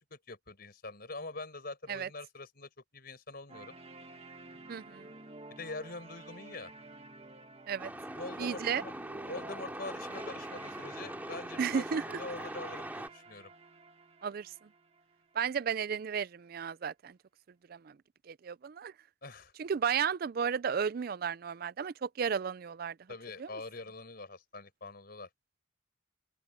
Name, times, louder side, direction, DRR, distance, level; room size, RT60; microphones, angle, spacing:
voice 1, 0.1-3.7 5.5-6.7 8.1-8.9 9.2-13.5 19.2-19.5 23.1-25.3, left 3 dB, 50° left, 5.0 m, -44 dB
sound 1, 3.5-15.5, right 2 dB, 30° right, 1.9 m, -51 dB
voice 2, 4.7-5.1 7.7-7.9 8.4-8.8 11.6-12.2 14.2-14.5 15.3-17.2 17.7-18.0 18.3-18.9 19.6-23.0 23.4-23.5, right 7 dB, 45° right, 0.4 m, -33 dB
Truck, 7.8-13.1, right 1 dB, 10° right, 2.3 m, -42 dB
open air
head